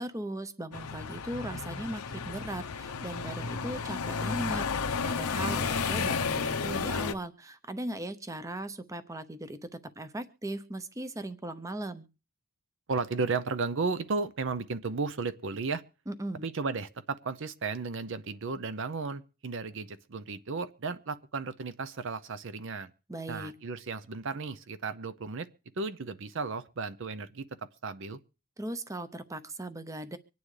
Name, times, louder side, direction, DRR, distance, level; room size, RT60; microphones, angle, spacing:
voice 1, 0.0-12.1 16.1-16.5 23.1-23.5 28.6-30.2, right 1 dB, 15° right, 0.6 m, -38 dB
sound 1, 0.7-7.1, left 5 dB, 85° left, 0.8 m, -32 dB
voice 2, 12.9-15.8 16.4-22.9 23.3-25.5 25.8-28.2, right 4 dB, 55° right, 0.6 m, -34 dB
25.0 x 9.4 x 3.2 m
head